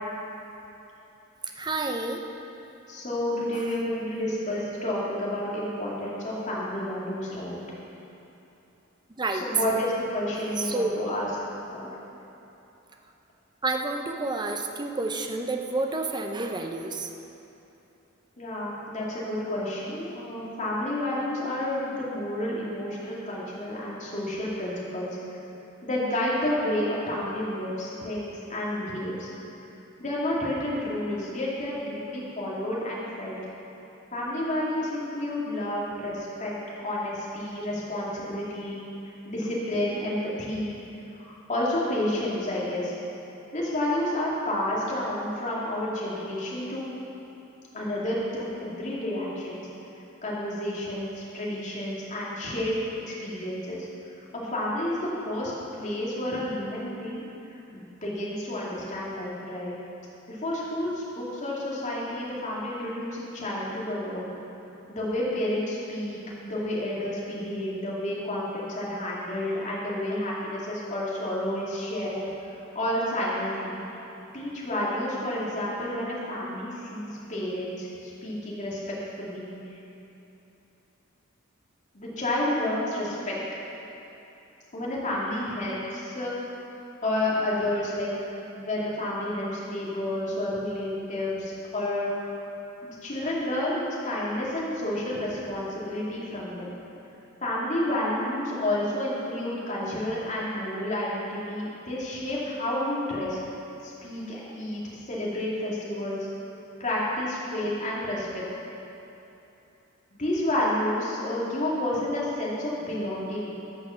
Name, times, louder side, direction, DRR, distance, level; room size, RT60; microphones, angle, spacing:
voice 1, 1.6-2.2 3.5-3.6 9.1-9.4 10.6-11.0 13.6-17.1, right 2 dB, 20° right, 4 dB, 0.7 m, -29 dB
voice 2, 2.9-7.6 9.4-11.3 11.7-12.0 18.4-25.1 25.8-29.3 30.0-33.4 34.1-38.8 39.3-40.8 41.3-42.9 43.5-46.9 47.7-49.6 50.2-52.7 53.0-53.9 54.3-55.0 55.2-57.2 57.7-59.7 60.3-64.3 64.9-72.2 72.7-73.8 74.3-77.9 78.2-79.6 81.9-83.4 84.7-86.3 87.0-88.1 88.5-92.1 92.8-96.7 97.4-103.4 103.8-104.8 105.1-106.2 106.8-108.4 110.2-113.5, left 1 dB, 35° left, -6 dB, 2.4 m, -30 dB
13.5 x 6.4 x 5.7 m, 3.0 s
head